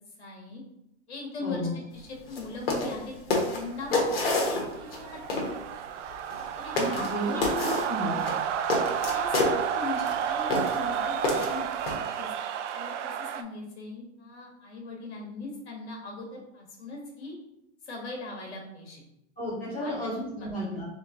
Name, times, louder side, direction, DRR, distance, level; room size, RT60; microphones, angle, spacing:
voice 1, 0.2-0.6 1.1-5.5 6.5-7.7 9.1-12.3 12.7-17.4 17.8-19.0 19.8-19.9 20.3-20.5, left 3 dB, 70° left, 0 dB, 1.4 m, -40 dB
voice 2, 1.4-1.7 6.7-8.3 19.4-20.9, equal, 10° right, -12 dB, 0.4 m, -33 dB
sound 1, 2.3-2.4 2.7-3.0 3.3-5.0 5.3-5.5 6.3-6.4 6.8-7.1 7.4-7.9 8.2-9.5 10.0-10.1 10.5-10.8 11.2-12.0, left 2 dB, 55° left, 1.1 m, -27 dB
sound 2, 3.5-13.4, right 8 dB, 85° right, 0.5 m, -31 dB
3.2 x 3.1 x 3.7 m, 0.82 s
hypercardioid pair, 180°, 35 cm